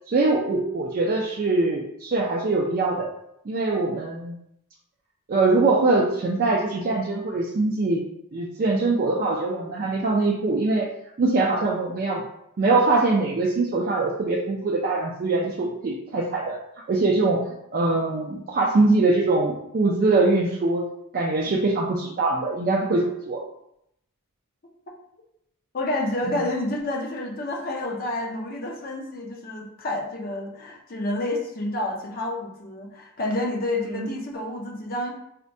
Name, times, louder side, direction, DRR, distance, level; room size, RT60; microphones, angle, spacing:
voice 1, 0.1-3.1 3.5-4.3 5.3-8.0 8.3-10.9 11.2-12.2 12.6-16.6 16.9-20.8 21.1-23.4 33.9-34.1, right 3 dB, 40° right, -3 dB, 0.4 m, -23 dB
voice 2, 25.7-35.1, left 1 dB, 40° left, 0 dB, 0.6 m, -29 dB
4.2 x 2.2 x 2.6 m, 0.78 s
head